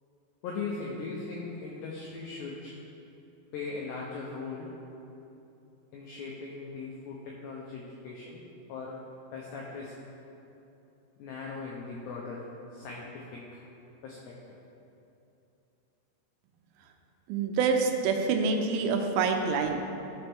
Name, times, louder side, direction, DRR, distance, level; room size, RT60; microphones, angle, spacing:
voice 1, 0.4-2.8 3.5-4.7 5.9-8.4 8.7-9.0 9.3-9.9 11.2-12.4 12.7-13.6 14.0-14.3, left 4 dB, 85° left, -3 dB, 2.4 m, -39 dB
voice 2, 17.3-19.8, right 5 dB, 85° right, 4 dB, 3.5 m, -26 dB
15.5 x 5.5 x 3.5 m, 2.9 s
omnidirectional pair, 5.9 m